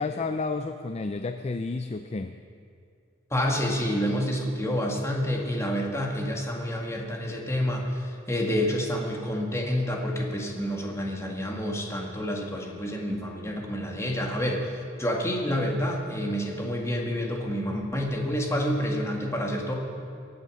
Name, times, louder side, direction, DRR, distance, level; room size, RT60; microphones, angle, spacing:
voice 1, 0.0-2.4, left 3 dB, 35° left, 8 dB, 0.4 m, -31 dB
voice 2, 3.3-14.7 15.0-19.7, equal, 15° left, 0 dB, 1.9 m, -28 dB
23.5 x 8.1 x 6.4 m, 2.3 s
head